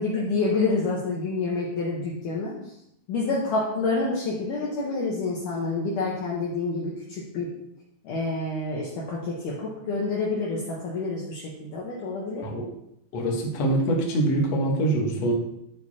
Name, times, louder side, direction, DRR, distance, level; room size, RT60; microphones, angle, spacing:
voice 1, 0.0-2.7 3.1-7.5 8.0-12.5, left 3 dB, 75° left, -5 dB, 1.8 m, -28 dB
voice 2, 13.1-15.3, right 1 dB, 60° left, -2 dB, 1.7 m, -24 dB
12.5 x 4.8 x 4.3 m, 0.81 s
omnidirectional pair, 5.7 m